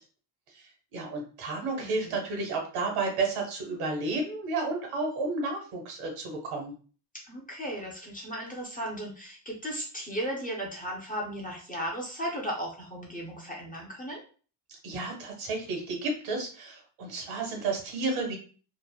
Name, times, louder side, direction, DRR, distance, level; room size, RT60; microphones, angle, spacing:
voice 1, 0.9-6.7 14.8-18.4, right 3 dB, 85° right, 1 dB, 1.1 m, -32 dB
voice 2, 1.7-2.1 7.3-14.2, equal, 20° left, -2 dB, 0.3 m, -36 dB
2.8 x 2.0 x 2.2 m, 0.40 s
cardioid pair, 135°, 49 cm